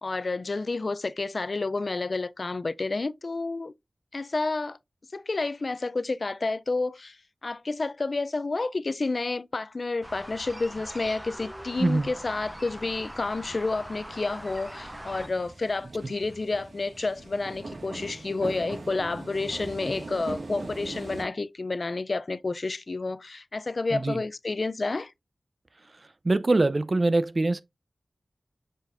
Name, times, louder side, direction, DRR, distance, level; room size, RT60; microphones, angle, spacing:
voice 1, 0.0-3.7 4.1-4.8 5.1-7.1 7.4-25.1, left 3 dB, 65° left, 0.4 m, -30 dB
sound 1, 10.0-15.3, equal, 10° right, 0.6 m, -42 dB
voice 2, 11.8-12.1 23.9-24.2 26.2-27.6, right 2 dB, 50° right, 0.6 m, -23 dB
sound 2, 12.1-21.2, right 2 dB, 85° right, 1.8 m, -42 dB
7.5 x 4.9 x 2.6 m
wide cardioid pair, 50°, 0 cm